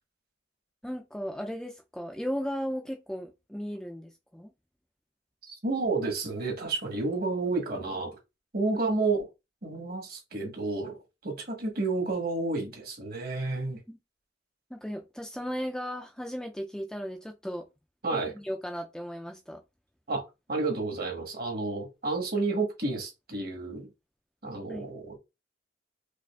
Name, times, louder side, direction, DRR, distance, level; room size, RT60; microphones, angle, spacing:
voice 1, 0.8-4.5 13.9-14.0 14.7-17.7 18.1-19.6 24.7-24.8, equal, 5° left, 0.3 m, -36 dB
voice 2, 5.4-8.2 8.5-9.3 9.6-13.8 18.0-18.3 20.1-20.2 20.5-23.9 24.4-25.2, right 3 dB, 55° right, 1.2 m, -30 dB
4.9 x 2.4 x 2.3 m
head